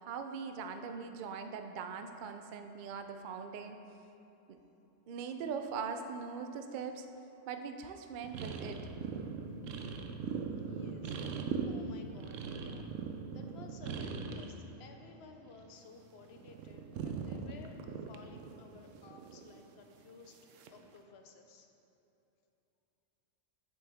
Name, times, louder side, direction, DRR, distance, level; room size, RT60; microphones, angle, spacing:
voice 1, 0.0-3.8 4.5-4.6 5.1-7.1 7.5-8.8, right 6 dB, 65° right, 7 dB, 0.5 m, -41 dB
sound 1, 8.2-14.6 14.9-15.9 16.2-19.8 20.5-20.9, right 5 dB, 85° right, 1.0 m, -40 dB
voice 2, 10.5-11.4 11.7-12.9 13.3-20.4 20.7-21.7, left 4 dB, 60° left, 5 dB, 0.9 m, -55 dB
8.5 x 7.3 x 3.5 m, 3.0 s
omnidirectional pair, 1.3 m